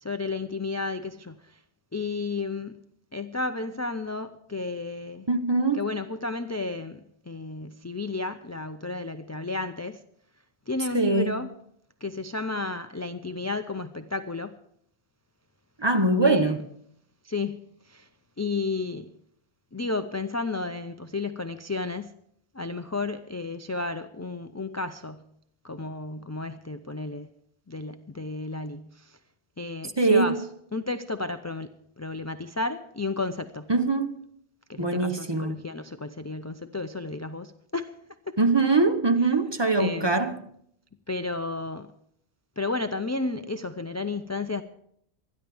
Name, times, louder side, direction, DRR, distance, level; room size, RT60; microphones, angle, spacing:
voice 1, 0.0-1.6 1.9-2.8 3.1-5.3 5.7-10.0 10.7-11.5 12.0-14.5 16.3-16.6 17.2-17.6 17.8-18.1 18.4-19.1 19.7-22.1 22.5-25.3 25.6-27.3 27.7-29.2 29.6-30.4 30.7-33.7 34.7-37.9 38.3-38.4 39.8-40.1 41.1-41.9 42.6-44.6, left 3 dB, 25° left, 0.4 m, -32 dB
voice 2, 5.3-5.9 10.9-11.3 15.8-16.6 30.0-30.4 33.7-34.2 34.8-35.6 38.4-40.4, right 3 dB, 25° right, 0.9 m, -23 dB
26.5 x 10.5 x 3.5 m
omnidirectional pair, 1.1 m